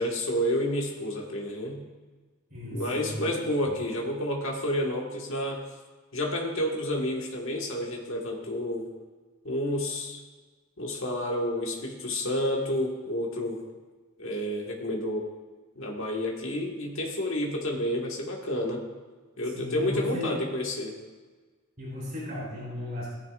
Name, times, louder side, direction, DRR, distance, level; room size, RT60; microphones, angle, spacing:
voice 1, 0.0-1.8 2.7-5.6 6.1-8.9 9.4-10.2 10.8-13.6 14.2-15.3 15.7-18.8 19.4-21.0, left 1 dB, 65° left, 0 dB, 1.6 m, -30 dB
voice 2, 2.5-3.4 19.4-20.4 21.8-23.1, left 1 dB, 40° right, -6 dB, 3.4 m, -35 dB
15.0 x 10.0 x 2.5 m, 1.3 s
head